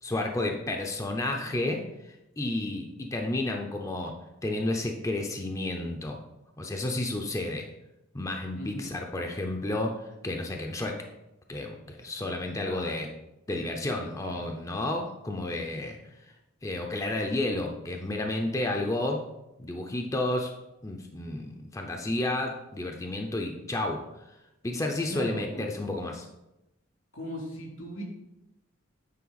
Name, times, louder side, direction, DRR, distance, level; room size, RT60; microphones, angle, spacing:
voice 1, 0.0-1.8 2.4-6.2 6.6-7.7 8.1-11.0 11.5-13.1 13.5-16.0 16.6-19.3 19.6-20.5 20.8-24.1 24.6-26.3, left 2 dB, 15° left, 2 dB, 0.5 m, -31 dB
voice 2, 8.5-8.9 12.6-13.0 25.1-25.7 27.1-28.0, equal, 85° left, -2 dB, 2.7 m, -38 dB
8.4 x 4.3 x 4.0 m, 0.92 s
head